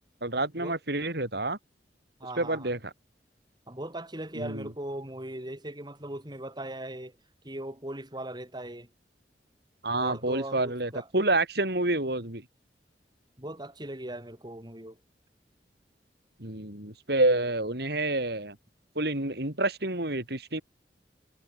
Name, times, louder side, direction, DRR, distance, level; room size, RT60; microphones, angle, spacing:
voice 1, 0.2-1.6 2.4-2.9 4.4-4.7 9.8-12.4 16.4-18.6 19.0-20.6, right 2 dB, 65° right, 6.1 m, -28 dB
voice 2, 2.2-2.7 3.7-7.1 7.4-8.9 10.0-11.1 13.4-15.0, right 1 dB, 25° right, 5.1 m, -39 dB
head